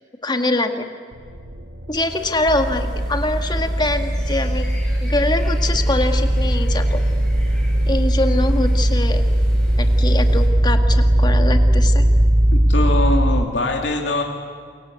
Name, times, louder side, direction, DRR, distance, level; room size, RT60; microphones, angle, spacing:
voice 1, 0.2-0.9 1.9-4.7 5.0-7.0 7.9-9.2 9.8-12.0, left 2 dB, 25° left, 6 dB, 1.9 m, -23 dB
sound 1, 1.1-13.7, equal, 80° right, 1.9 m, -33 dB
sound 2, 2.1-10.5, left 1 dB, 5° left, 7.0 m, -45 dB
sound 3, 2.5-13.5, right 1 dB, 20° right, 0.8 m, -18 dB
voice 2, 12.5-14.2, left 2 dB, 85° left, 1 dB, 2.7 m, -22 dB
28.5 x 24.0 x 8.3 m, 2.1 s
head